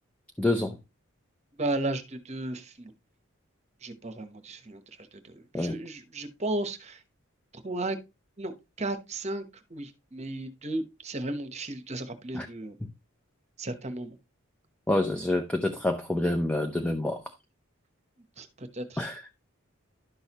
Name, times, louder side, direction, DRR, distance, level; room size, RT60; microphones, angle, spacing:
voice 1, 0.4-0.8 5.5-5.8 12.3-12.5 14.9-17.2 19.0-19.3, left 1 dB, 5° left, 0.7 m, -27 dB
voice 2, 1.6-2.9 3.8-4.8 5.3-7.0 7.6-8.0 8.4-9.4 9.7-12.8 13.6-14.1 18.4-19.0, right 2 dB, 30° right, 1.0 m, -34 dB
11.5 x 6.3 x 2.9 m
head